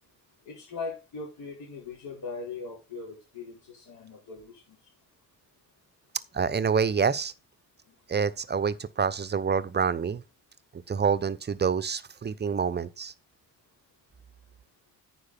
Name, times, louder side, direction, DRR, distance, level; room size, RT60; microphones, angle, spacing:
voice 1, 0.4-4.5, left 4 dB, 55° left, 4.8 m, -39 dB
voice 2, 6.3-7.3 8.1-10.2 10.7-13.1, right 6 dB, 25° right, 0.8 m, -27 dB
9.7 x 6.5 x 4.3 m
hypercardioid pair, 45°, 43 cm